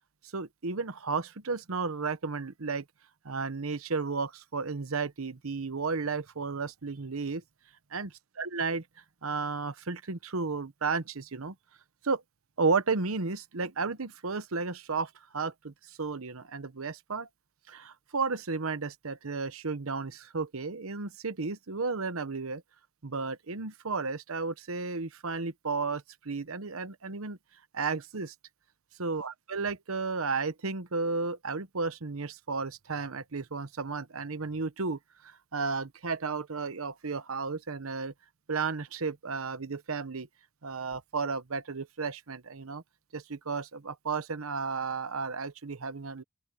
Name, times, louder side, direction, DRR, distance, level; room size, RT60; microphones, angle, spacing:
voice 1, 0.3-2.8 3.2-7.4 7.9-8.1 8.4-8.8 9.2-11.5 12.0-12.2 12.6-17.3 17.7-22.6 23.0-27.4 27.7-28.3 29.0-38.1 38.5-40.3 40.6-42.8 43.1-46.2, right 4 dB, 85° right, 1.0 m, -33 dB
open air
head